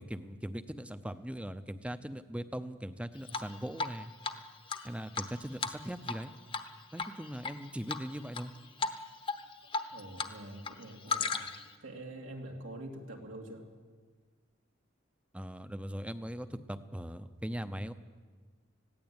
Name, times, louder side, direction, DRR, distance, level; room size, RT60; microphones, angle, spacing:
voice 1, 0.0-4.1 4.8-6.3 6.9-8.5 15.3-17.9, equal, 5° right, 11 dB, 0.7 m, -40 dB
Drip, 3.3-4.0 4.2-4.3 4.7-6.2 6.5-6.7 7.0-7.5 7.9-8.4 8.8-9.0 9.3-10.3 10.6-11.7, left 4 dB, 25° left, 1.0 m, -35 dB
voice 2, 9.9-11.4 11.8-13.7, right 1 dB, 85° right, 1 dB, 3.3 m, -45 dB
20.0 x 16.5 x 8.9 m, 1.5 s
head